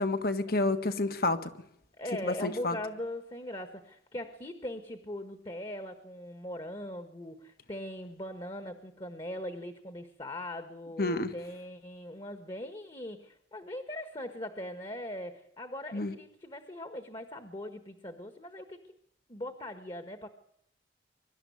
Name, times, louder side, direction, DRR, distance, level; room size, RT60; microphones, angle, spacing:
voice 1, 0.0-1.5 2.2-2.8 11.0-11.3 15.9-16.1, left 2 dB, 50° left, 10 dB, 1.6 m, -29 dB
voice 2, 2.0-18.8 19.3-20.3, left 1 dB, 25° left, 8 dB, 1.5 m, -40 dB
24.0 x 12.5 x 9.5 m, 0.76 s
head